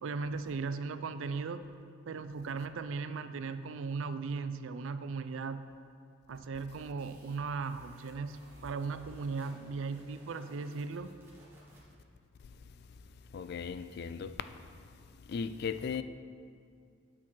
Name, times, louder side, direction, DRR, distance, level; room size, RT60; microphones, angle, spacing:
voice 1, 0.0-1.6 2.1-5.7 6.3-11.1, right 4 dB, 70° right, 0.4 m, -37 dB
sound 1, 6.9-12.0, right 1 dB, 10° right, 1.6 m, -58 dB
voice 2, 13.3-14.3 15.3-16.0, left 6 dB, 55° left, 0.3 m, -36 dB
8.7 x 6.0 x 4.3 m
head